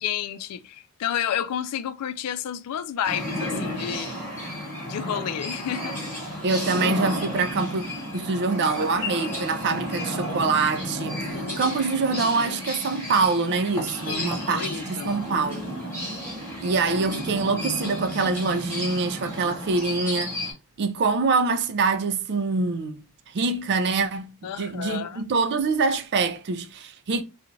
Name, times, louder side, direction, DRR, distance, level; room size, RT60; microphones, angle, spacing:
voice 1, 0.0-4.2 4.8-6.0 11.1-11.8 14.1-15.1 24.4-25.2, left 9 dB, 90° left, 0.3 m, -31 dB
sound 1, 3.0-20.5, equal, 10° left, 1.2 m, -32 dB
voice 2, 6.4-7.8 8.1-15.8 16.6-20.4 20.8-23.0 23.3-24.3 24.6-27.2, right 4 dB, 50° right, 0.4 m, -25 dB
2.4 x 2.3 x 3.0 m
head